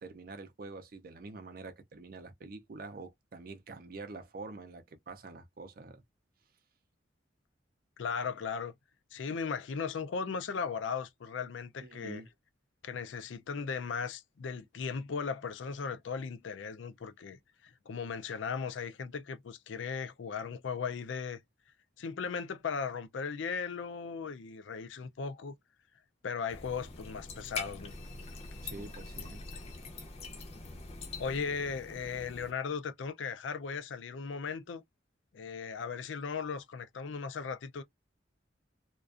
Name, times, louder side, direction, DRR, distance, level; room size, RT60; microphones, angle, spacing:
voice 1, 0.0-6.0 11.8-12.3 28.6-29.4, right 3 dB, 50° right, 0.5 m, -46 dB
voice 2, 8.0-8.7 9.1-12.2 12.8-21.4 22.0-25.5 26.2-27.9 31.2-34.8 35.3-37.8, left 5 dB, 85° left, 0.4 m, -37 dB
sound 1, 26.5-32.5, left 3 dB, 35° left, 0.5 m, -44 dB
2.4 x 2.2 x 2.4 m
head